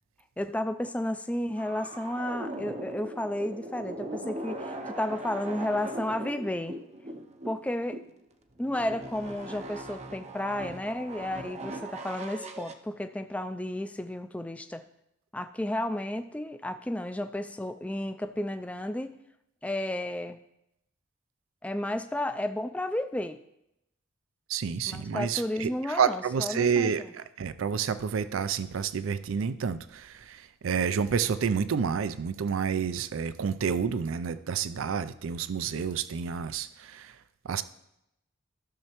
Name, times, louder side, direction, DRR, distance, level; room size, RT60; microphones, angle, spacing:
voice 1, 0.4-6.7 7.4-8.0 8.6-14.8 15.3-19.2 19.6-20.4 21.6-23.4 24.9-26.9, left 1 dB, 5° left, 9 dB, 0.3 m, -32 dB
sound 1, 1.6-8.2 8.6-12.7, right 1 dB, 35° right, 0.6 m, -40 dB
voice 2, 24.5-37.2 37.4-37.6, right 6 dB, 85° right, 14 dB, 0.4 m, -29 dB
14.0 x 6.6 x 3.0 m, 0.82 s
head